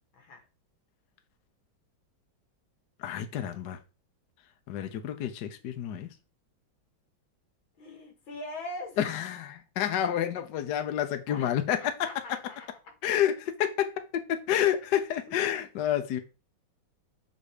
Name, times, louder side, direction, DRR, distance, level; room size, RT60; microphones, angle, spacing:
voice 1, 3.0-3.8 4.7-6.1 9.0-11.9 13.0-16.2, left 10 dB, 65° left, 1.3 m, -29 dB
voice 2, 7.8-9.0 11.3-12.9 15.5-15.7, left 2 dB, 90° left, 2.5 m, -42 dB
7.7 x 4.0 x 4.9 m
omnidirectional pair, 2.1 m